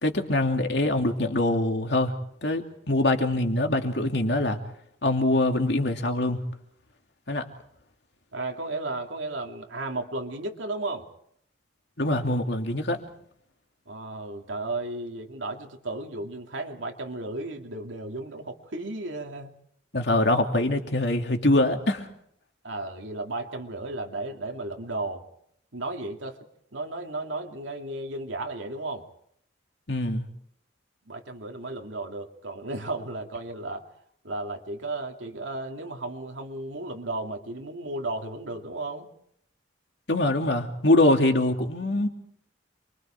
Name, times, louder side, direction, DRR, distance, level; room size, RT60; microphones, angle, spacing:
voice 1, 0.0-2.1 2.4-4.6 5.0-6.4 7.3-7.5 12.0-13.0 19.9-22.1 29.9-30.2 40.1-42.1, left 1 dB, 60° left, 4 dB, 2.8 m, -24 dB
voice 2, 8.3-11.1 13.9-19.5 22.6-25.2 25.7-26.4 26.7-29.0 31.1-33.8 34.2-39.1, right 2 dB, 85° right, 3 dB, 2.7 m, -34 dB
28.0 x 24.0 x 4.5 m, 0.70 s
head